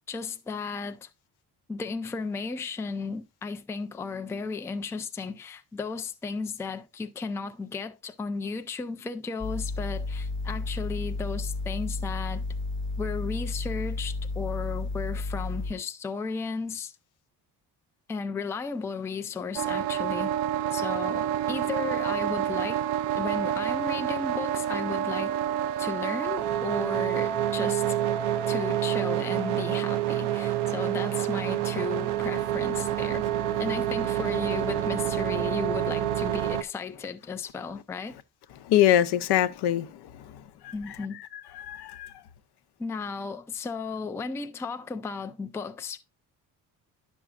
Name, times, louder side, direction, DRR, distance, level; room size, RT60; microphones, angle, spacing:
voice 1, 0.1-1.1 1.7-12.4 13.0-16.9 18.1-20.3 20.7-22.8 23.2-25.3 25.8-28.0 28.5-33.3 33.6-38.2 40.7-41.2 42.8-46.0, left 5 dB, 5° left, 0.3 m, -34 dB
sound 1, 9.4-15.7, left 3 dB, 30° left, 1.0 m, -32 dB
sound 2, 19.6-36.6, right 11 dB, 85° right, 0.6 m, -28 dB
voice 2, 38.7-39.9 40.6-40.7 41.6-42.1, left 11 dB, 75° left, 0.7 m, -23 dB
10.0 x 6.2 x 2.4 m
cardioid pair, 130°, 39 cm